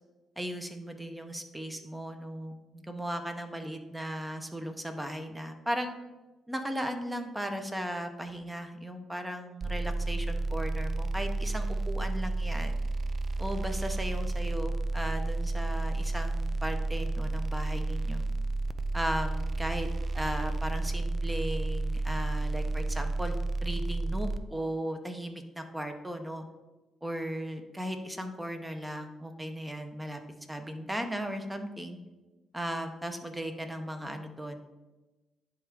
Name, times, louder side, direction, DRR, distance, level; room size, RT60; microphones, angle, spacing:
voice 1, 0.4-5.9 6.5-12.7 13.4-18.2 18.9-19.9 20.1-26.4 27.0-30.2 30.5-32.0 32.5-34.6, equal, 10° right, 6 dB, 0.8 m, -36 dB
sound 1, 9.6-24.4, right 2 dB, 40° right, 0.4 m, -31 dB
10.5 x 3.6 x 3.6 m, 1.1 s
cardioid pair, 90°, 0 cm